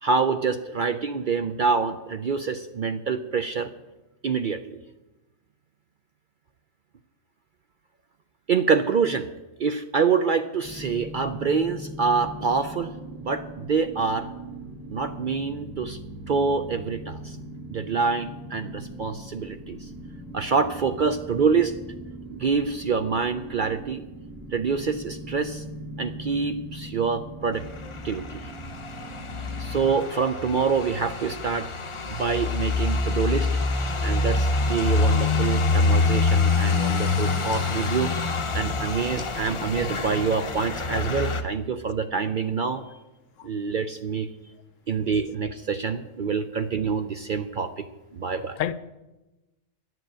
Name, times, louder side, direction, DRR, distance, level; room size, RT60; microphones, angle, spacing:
voice 1, 0.0-3.7 4.2-4.8 8.5-9.3 9.6-12.9 13.2-14.3 14.9-16.0 16.3-17.4 17.7-19.9 20.3-21.7 22.3-24.0 24.5-25.6 26.0-27.6 28.0-28.5 29.6-31.7 32.1-33.5 34.0-38.2 38.5-42.8 43.4-44.3 44.9-47.9 48.1-48.6, right 5 dB, 55° right, 0.5 m, -26 dB
sound 1, 10.6-29.9, right 1 dB, ahead, 1.1 m, -40 dB
sound 2, 27.6-41.4, left 3 dB, 30° left, 0.6 m, -26 dB
voice 2, 48.2-48.7, left 11 dB, 75° left, 1.0 m, -31 dB
11.0 x 7.8 x 8.7 m
omnidirectional pair, 1.3 m